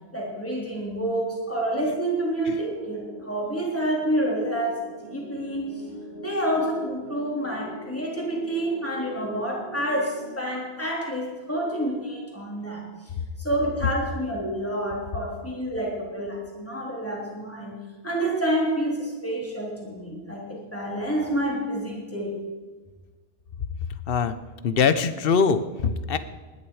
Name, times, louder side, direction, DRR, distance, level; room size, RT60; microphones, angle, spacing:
voice 1, 0.1-5.8 6.2-12.8 13.4-17.8 18.0-22.3, right 1 dB, 15° left, -3 dB, 3.5 m, -28 dB
sound 1, 2.5-10.3, equal, 5° right, 6.4 m, -42 dB
voice 2, 24.6-26.2, left 5 dB, 65° left, 12 dB, 1.0 m, -22 dB
20.0 x 10.5 x 4.8 m, 1.3 s
omnidirectional pair, 1.1 m